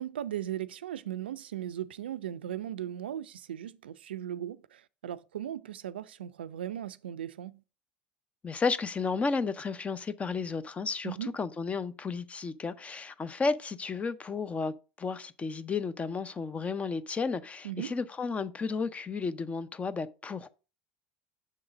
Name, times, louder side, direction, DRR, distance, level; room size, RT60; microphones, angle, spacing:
voice 1, 0.0-7.6 11.0-11.3 17.6-17.9, right 11 dB, 85° right, 0.3 m, -37 dB
voice 2, 8.4-20.5, left 4 dB, 25° left, 0.6 m, -33 dB
6.4 x 3.9 x 5.0 m
hypercardioid pair, 80°, 5 cm